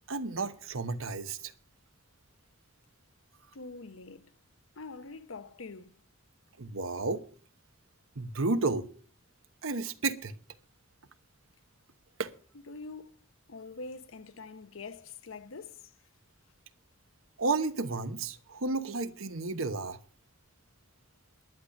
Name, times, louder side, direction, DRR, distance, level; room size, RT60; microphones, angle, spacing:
voice 1, 0.1-1.5 6.6-7.2 8.2-8.9 9.6-10.3 12.2-12.3 17.4-20.0, right 3 dB, 80° right, 1.1 m, -32 dB
voice 2, 3.5-4.3 4.8-5.9 12.7-15.9, left 3 dB, 75° left, 0.9 m, -45 dB
11.0 x 10.0 x 6.4 m
head